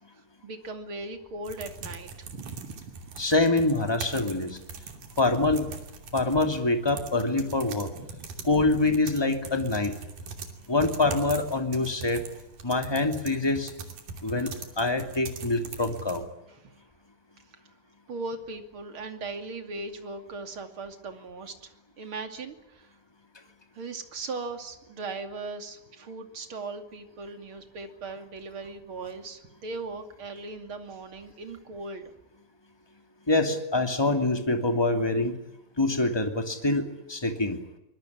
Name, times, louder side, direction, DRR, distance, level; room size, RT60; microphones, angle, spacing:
voice 1, 0.1-3.0 4.9-5.2 7.9-8.2 16.5-16.7 18.1-22.9 23.7-32.1, right 3 dB, 35° right, 7 dB, 2.8 m, -39 dB
sound 1, 1.5-16.2, right 4 dB, 55° right, 4.2 m, -42 dB
voice 2, 3.2-4.6 5.2-5.7 6.1-7.9 8.4-9.9 10.7-12.2 12.6-13.7 14.2-16.2 33.3-35.4 35.8-37.6, left 2 dB, 10° left, 6 dB, 1.6 m, -25 dB
24.5 x 21.5 x 9.8 m, 0.89 s
omnidirectional pair, 5.0 m